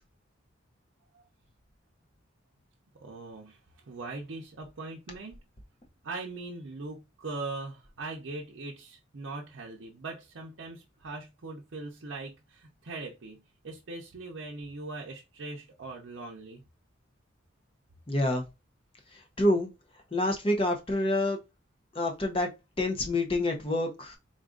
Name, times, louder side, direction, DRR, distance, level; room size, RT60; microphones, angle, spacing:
voice 1, 3.0-3.6 3.9-5.4 6.0-13.4 13.6-16.6, right 3 dB, 75° right, 0.6 m, -40 dB
voice 2, 18.1-18.4 19.4-19.7 20.1-21.4 21.9-22.5 22.8-24.2, left 1 dB, 25° left, 0.6 m, -27 dB
3.8 x 2.4 x 3.6 m
head